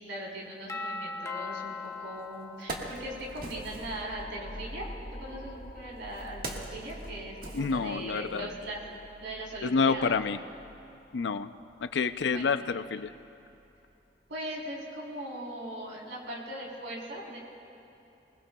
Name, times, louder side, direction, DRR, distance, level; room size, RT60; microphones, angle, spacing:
voice 1, 0.0-4.9 5.2-10.2 12.2-12.6 14.3-17.4, right 1 dB, 90° right, -4 dB, 3.7 m, -40 dB
Doorbell, 0.7-3.5, left 3 dB, 15° left, 0.7 m, -39 dB
Wood, 1.8-1.9 2.4-4.0 5.0-8.3 8.6-8.8, right 2 dB, 55° right, 1.6 m, -42 dB
sound 1, 2.8-13.9, equal, 50° left, 2.3 m, -47 dB
voice 2, 7.5-8.5 9.6-10.4 11.1-11.5 11.8-13.1, left 5 dB, 75° left, 12 dB, 0.5 m, -28 dB
26.0 x 20.0 x 2.3 m, 2.9 s
head